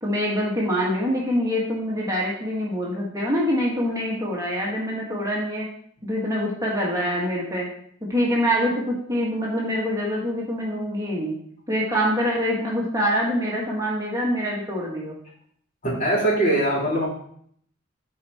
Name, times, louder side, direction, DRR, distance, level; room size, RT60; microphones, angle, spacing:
voice 1, 0.0-5.6 6.0-7.7 8.1-11.4 11.7-15.1, equal, 20° right, -4 dB, 1.5 m, -25 dB
voice 2, 15.8-17.1, right 1 dB, 45° left, -6 dB, 3.5 m, -21 dB
9.1 x 4.7 x 4.1 m, 0.64 s
head